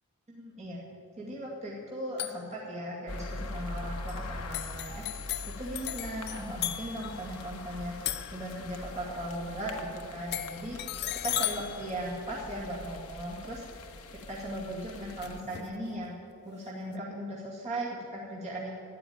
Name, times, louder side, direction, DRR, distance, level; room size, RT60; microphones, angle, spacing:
voice 1, 0.3-0.8 1.2-5.1 5.6-10.8 11.2-13.7 14.3-16.2 16.4-18.7, right 1 dB, 30° right, -6 dB, 2.2 m, -38 dB
sound 1, 2.2-2.6 4.1-4.2 4.5-9.0 10.3-12.9 15.2-15.8, left 12 dB, 50° left, 0.6 m, -37 dB
sound 2, 3.1-15.4, left 2 dB, 80° left, 1.2 m, -43 dB
12.5 x 9.2 x 9.4 m, 2.6 s
head